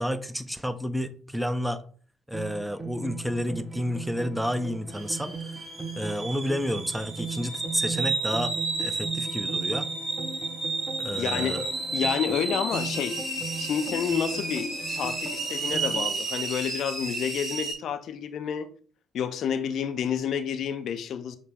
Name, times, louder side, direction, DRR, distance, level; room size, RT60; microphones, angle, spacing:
voice 1, 0.0-1.8 2.3-5.3 6.0-9.9 11.0-11.7, equal, 5° right, 0.5 m, -30 dB
sound 1, 2.3-16.1, right 4 dB, 25° right, 0.8 m, -38 dB
sound 2, 4.9-17.7, right 3 dB, 55° right, 2.3 m, -32 dB
voice 2, 11.2-11.6 11.9-13.2 13.6-18.7 19.1-21.4, left 8 dB, 55° left, 0.4 m, -29 dB
6.4 x 2.1 x 3.4 m
figure-of-eight pair, 50°, 0 cm